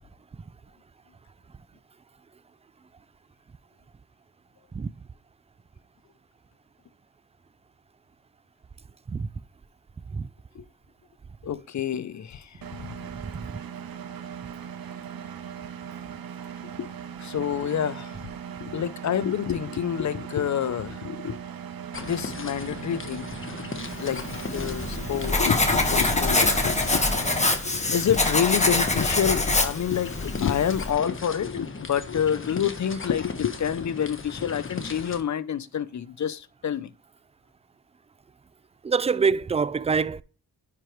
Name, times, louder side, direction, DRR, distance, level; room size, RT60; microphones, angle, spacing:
voice 1, 11.4-13.0 16.6-16.9 17.2-18.2 18.6-21.4 22.0-23.3 24.0-27.0 27.3-36.9, left 9 dB, 50° left, 0.6 m, -28 dB
Engine, 12.6-27.5, right 8 dB, 70° right, 0.9 m, -39 dB
sound 1, 21.9-35.2, left 3 dB, 35° left, 1.1 m, -37 dB
Writing, 24.2-30.9, left 2 dB, 20° left, 1.4 m, -25 dB
voice 2, 38.8-40.2, right 5 dB, 20° right, 0.3 m, -25 dB
9.7 x 4.6 x 3.2 m
cardioid pair, 65°, 37 cm